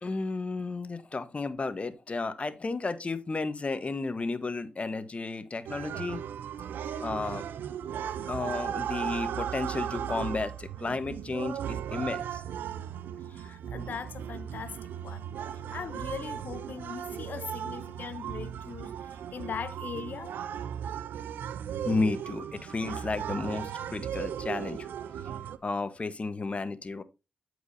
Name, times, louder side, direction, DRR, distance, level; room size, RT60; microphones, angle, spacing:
voice 1, 0.0-6.2 7.0-7.4 8.3-12.4 21.8-24.9 25.6-27.0, left 3 dB, 40° left, 1.1 m, -33 dB
sound 1, 5.7-25.6, right 9 dB, 80° right, 0.5 m, -36 dB
voice 2, 13.3-14.8 15.0-15.3 15.7-20.3, left 7 dB, 65° left, 0.9 m, -40 dB
13.5 x 4.8 x 2.7 m
supercardioid pair, 45°, 3 cm